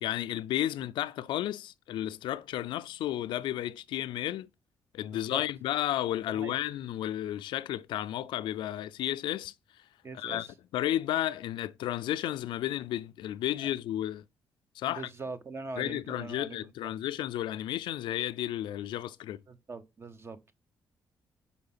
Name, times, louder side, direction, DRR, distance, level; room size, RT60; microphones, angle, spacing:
voice 1, 0.0-4.5 4.9-9.8 10.1-10.5 10.7-14.2 14.8-15.1 15.8-19.4, left 13 dB, 85° left, 0.4 m, -33 dB
voice 2, 10.0-10.5 13.6-13.7 14.8-16.9 19.5-20.5, right 3 dB, 30° right, 0.8 m, -42 dB
5.7 x 4.2 x 5.5 m
cardioid pair, 105°, 8 cm